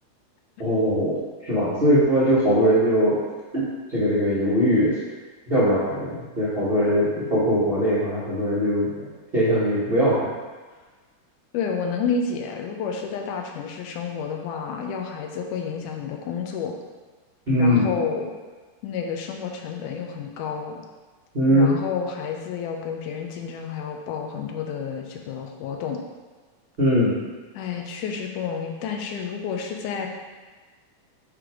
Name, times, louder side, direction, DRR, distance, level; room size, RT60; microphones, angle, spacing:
voice 1, 0.6-3.2 3.5-5.0 5.5-9.1 9.3-10.3 17.5-17.9 21.3-21.7 26.8-27.1, equal, 55° right, -10 dB, 0.6 m, -21 dB
voice 2, 11.5-16.8 17.6-18.3 18.8-20.8 21.5-26.0 27.6-30.1, left 6 dB, 85° left, 3 dB, 2.2 m, -30 dB
7.8 x 3.3 x 4.9 m, 1.4 s
omnidirectional pair, 3.6 m